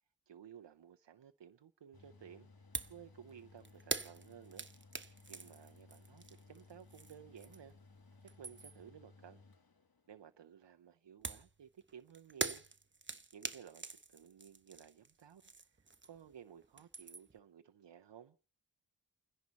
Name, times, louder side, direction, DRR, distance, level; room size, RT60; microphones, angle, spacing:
voice 1, 0.3-4.7 5.3-7.7 8.4-9.4 10.1-12.6 13.3-18.4, right 8 dB, 85° right, 0.7 m, -56 dB
Mechanical fan, 1.9-10.4, left 3 dB, 55° left, 1.4 m, -61 dB
sound 1, 2.7-3.0 3.3-7.8 8.1-8.9 11.2-16.3 16.6-17.4, right 4 dB, 25° right, 0.9 m, -44 dB
29.5 x 10.5 x 4.1 m
wide cardioid pair, 60°, 42 cm